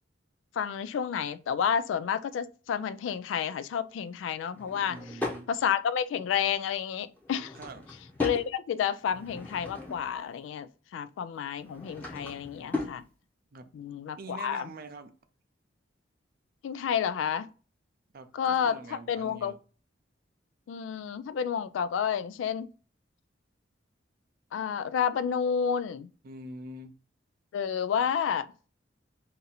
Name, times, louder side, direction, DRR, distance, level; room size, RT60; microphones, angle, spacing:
voice 1, 0.5-5.0 5.5-7.6 8.2-13.0 13.7-14.7 16.6-17.5 18.3-19.5 20.7-22.7 24.5-26.1 27.5-28.5, left 7 dB, 80° left, 0.3 m, -30 dB
Drawer open or close / Wood, 4.5-5.5 7.2-8.5 9.0-10.2 11.5-13.0, left 2 dB, 10° left, 0.8 m, -37 dB
voice 2, 4.9-5.5 7.5-7.8 13.5-13.7 14.1-15.1 18.1-19.6 26.2-26.9, right 2 dB, 50° right, 0.5 m, -44 dB
2.7 x 2.6 x 4.0 m
head